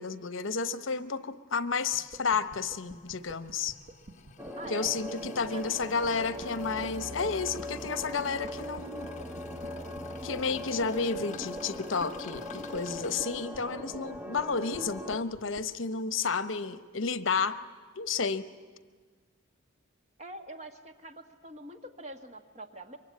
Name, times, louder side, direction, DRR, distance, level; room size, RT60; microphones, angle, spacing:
voice 1, 0.0-3.8 4.7-9.1 10.2-17.6 18.0-18.4, left 5 dB, 70° left, 13 dB, 0.9 m, -31 dB
sound 1, 1.9-15.7, right 1 dB, 65° right, 1.9 m, -48 dB
sound 2, 2.5-13.1, left 3 dB, 35° left, 1.3 m, -48 dB
sound 3, 4.4-15.2, left 1 dB, 10° right, 0.8 m, -41 dB
voice 2, 4.6-5.0 5.5-5.6 20.2-23.0, right 2 dB, 35° right, 6 dB, 1.7 m, -44 dB
24.0 x 24.0 x 9.7 m, 1.5 s
head